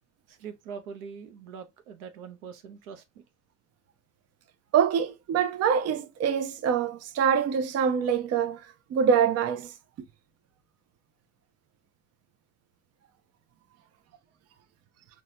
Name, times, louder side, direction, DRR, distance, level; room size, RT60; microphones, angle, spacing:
voice 1, 0.3-3.0 13.8-13.9 14.5-14.6, right 6 dB, 85° right, 0.8 m, -43 dB
voice 2, 4.7-8.6 8.9-9.7, right 7 dB, 40° right, 0.6 m, -25 dB
4.1 x 2.4 x 2.6 m
supercardioid pair, 80°, 40 cm